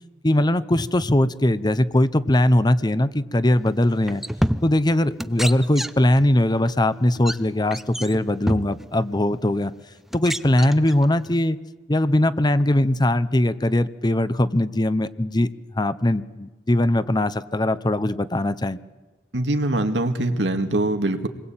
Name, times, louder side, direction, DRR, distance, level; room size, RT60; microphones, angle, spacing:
voice 1, 0.2-4.2 4.6-9.7 10.1-11.6 11.9-15.5 15.7-18.8, left 1 dB, 25° left, 14 dB, 0.9 m, -20 dB
sound 1, 3.7-3.8 4.1-4.9 5.2-6.2 6.5-6.7 7.1-7.3 7.7-8.9 9.6-9.7 10.1-11.4, equal, ahead, 0.8 m, -27 dB
voice 2, 19.3-21.3, right 1 dB, 85° right, 6 dB, 2.4 m, -23 dB
28.0 x 21.5 x 8.9 m, 1.2 s
head